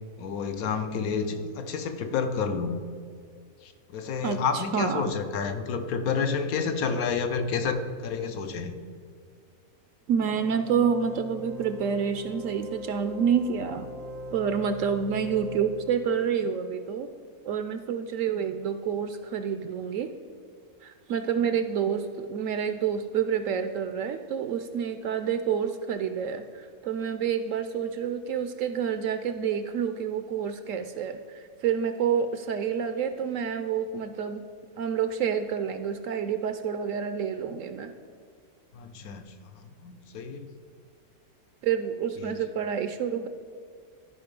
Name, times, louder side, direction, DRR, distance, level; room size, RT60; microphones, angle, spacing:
voice 1, 0.2-2.8 3.6-8.8 38.7-40.5 42.2-42.4, left 5 dB, 70° left, 8 dB, 1.2 m, -30 dB
voice 2, 4.2-5.1 10.1-13.9 14.3-17.1 17.5-20.1 20.8-34.4 34.8-37.9 41.6-43.3, right 7 dB, 70° right, 9 dB, 0.8 m, -28 dB
sound 1, 10.2-16.3, right 1 dB, 85° right, 1.9 m, -41 dB
12.5 x 5.2 x 5.2 m, 2.1 s
omnidirectional pair, 1.6 m